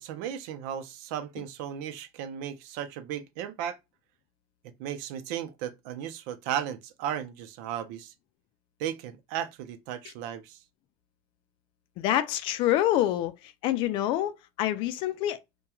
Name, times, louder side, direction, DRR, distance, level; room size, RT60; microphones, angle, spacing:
voice 1, 0.0-3.8 4.8-8.1 8.8-10.6, right 10 dB, 80° right, 0.5 m, -35 dB
voice 2, 12.0-15.4, left 13 dB, 55° left, 0.4 m, -27 dB
2.9 x 2.2 x 2.3 m
cardioid pair, 150°, 11 cm